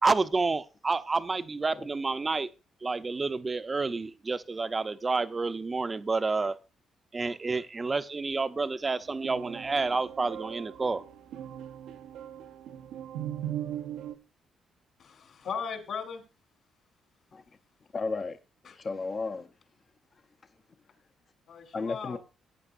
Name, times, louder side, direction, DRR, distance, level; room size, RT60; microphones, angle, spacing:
voice 1, 0.0-2.5 2.8-6.5 7.1-11.0, right 3 dB, 30° right, 0.7 m, -29 dB
sound 1, 9.0-14.2, right 11 dB, 90° right, 1.0 m, -39 dB
voice 2, 15.0-16.2 18.6-18.8 21.5-22.2, left 6 dB, 60° left, 3.4 m, -37 dB
voice 3, 17.9-18.4 18.8-19.5 21.7-22.2, left 4 dB, 40° left, 0.8 m, -33 dB
17.0 x 9.3 x 2.6 m
cardioid pair, 90°, 0 cm